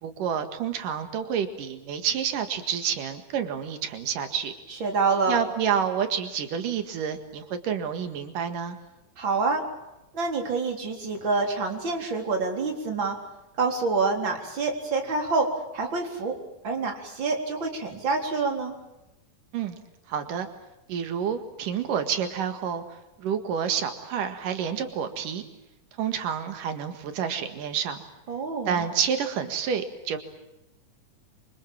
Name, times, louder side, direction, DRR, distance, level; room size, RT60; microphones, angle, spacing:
voice 1, 0.0-4.5 5.3-8.8 19.5-19.8 20.1-20.5 20.9-25.4 26.0-28.0 28.7-30.2, right 8 dB, 90° right, 8 dB, 3.5 m, -29 dB
voice 2, 4.8-5.4 9.2-9.6 10.1-13.2 13.6-15.5 15.7-16.4 16.6-18.7 28.3-28.8, right 4 dB, 35° right, 3 dB, 4.4 m, -27 dB
27.0 x 25.0 x 7.5 m, 0.94 s
omnidirectional pair, 3.7 m